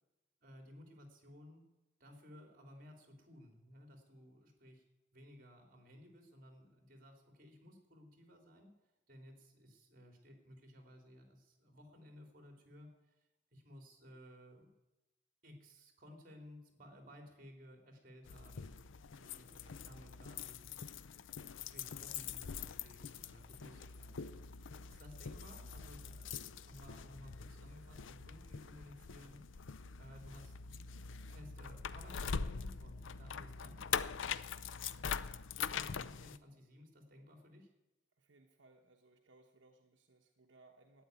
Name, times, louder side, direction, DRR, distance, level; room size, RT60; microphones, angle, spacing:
voice 1, 0.4-1.7 2.0-4.8 5.1-8.7 9.1-13.2 13.5-14.7 15.4-18.7 19.1-20.6 21.6-24.5 24.9-30.6 31.3-33.8 35.7-37.7, equal, 45° right, 4 dB, 3.1 m, -57 dB
sound 1, 18.3-36.4, left 6 dB, 85° left, 0.5 m, -43 dB
voice 2, 38.2-41.0, right 2 dB, 75° right, 3 dB, 1.1 m, -65 dB
12.5 x 9.5 x 9.4 m, 0.99 s
head